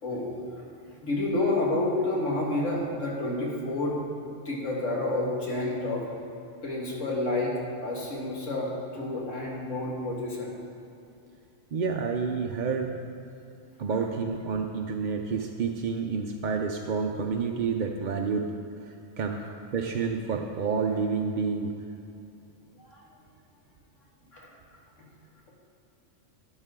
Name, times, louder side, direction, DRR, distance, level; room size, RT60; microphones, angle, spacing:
voice 1, 1.0-4.0 4.5-6.1 6.6-7.5 7.8-10.5 19.3-19.4 22.8-23.0 24.3-24.5 25.0-25.1, left 2 dB, 90° left, -3 dB, 2.3 m, -29 dB
voice 2, 11.7-13.0 13.8-18.5 18.8-19.4 19.7-21.7, right 5 dB, 50° right, 2 dB, 0.6 m, -29 dB
12.5 x 9.6 x 3.8 m, 2.7 s
omnidirectional pair, 1.2 m